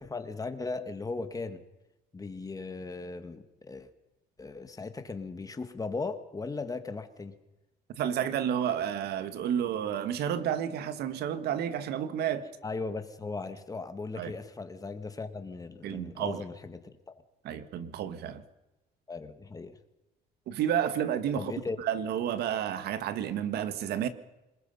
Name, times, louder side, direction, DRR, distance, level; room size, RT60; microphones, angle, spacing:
voice 1, 0.0-1.6 2.1-3.9 4.4-7.4 12.6-17.1 19.1-19.8 21.4-21.8, left 3 dB, 20° left, 9 dB, 2.0 m, -37 dB
voice 2, 8.0-12.5 14.2-14.3 15.8-16.4 17.4-18.4 20.5-21.5 21.8-24.1, right 9 dB, 75° right, 11 dB, 1.7 m, -31 dB
27.5 x 20.5 x 5.6 m, 1.0 s
cardioid pair, 110°, 17 cm